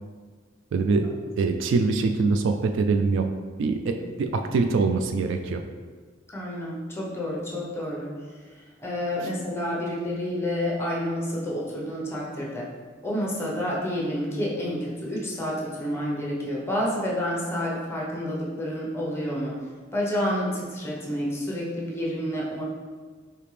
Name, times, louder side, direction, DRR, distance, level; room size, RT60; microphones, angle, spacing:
voice 1, 0.7-1.1 1.4-3.3 3.6-5.6, right 4 dB, 65° right, 6 dB, 0.3 m, -24 dB
voice 2, 6.3-8.1 8.8-12.7 13.0-19.6 19.9-22.6, equal, 15° left, -4 dB, 0.8 m, -29 dB
5.0 x 2.8 x 3.3 m, 1.5 s
head